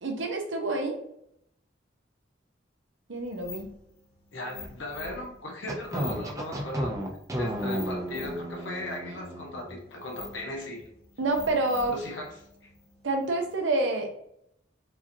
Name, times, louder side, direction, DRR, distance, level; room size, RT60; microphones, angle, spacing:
voice 1, 0.0-1.0 3.1-3.7 7.6-7.9 11.2-12.0 13.0-14.1, right 2 dB, 80° right, 4 dB, 0.8 m, -28 dB
sound 1, 3.2-13.7, left 4 dB, 35° left, 0.6 m, -47 dB
voice 2, 4.3-6.9 7.4-10.8 11.9-12.3 12.6-12.7, left 1 dB, 75° left, 0 dB, 1.0 m, -37 dB
sound 2, 5.7-9.8, right 1 dB, 15° right, 0.5 m, -33 dB
4.7 x 2.8 x 2.7 m, 0.73 s
head